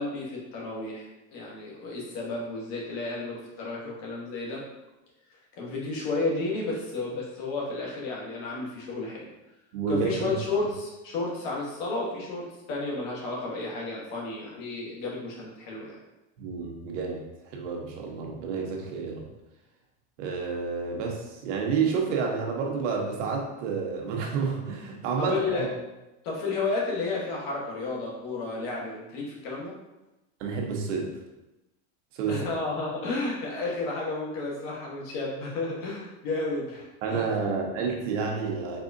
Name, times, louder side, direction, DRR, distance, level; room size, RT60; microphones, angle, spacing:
voice 1, 0.0-4.6 5.5-9.3 9.9-16.0 25.2-25.6 26.2-29.7 32.3-37.3, left 3 dB, 55° left, -4 dB, 1.4 m, -32 dB
voice 2, 9.7-10.3 16.4-17.2 17.5-19.3 20.2-25.7 30.4-31.1 32.1-32.4 37.0-38.8, right 5 dB, 85° right, 1 dB, 1.1 m, -29 dB
4.7 x 3.7 x 2.6 m, 0.99 s
supercardioid pair, 175°, 36 cm